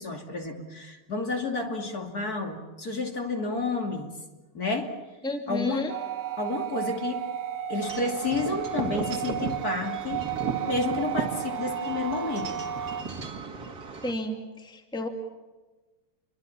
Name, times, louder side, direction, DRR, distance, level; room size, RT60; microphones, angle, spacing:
voice 1, 0.0-4.1 4.5-4.9 5.5-5.9 6.4-7.2 7.5-10.2 10.6-12.6, left 3 dB, 45° left, 2 dB, 3.2 m, -30 dB
voice 2, 5.2-5.9 14.0-15.1, left 1 dB, ahead, 4 dB, 2.3 m, -32 dB
sound 1, 5.9-13.0, right 10 dB, 65° right, 1.7 m, -33 dB
Wind chime / Wind, 7.8-14.1, right 5 dB, 45° right, 2.6 m, -36 dB
28.0 x 24.0 x 7.2 m, 1.2 s
omnidirectional pair, 2.4 m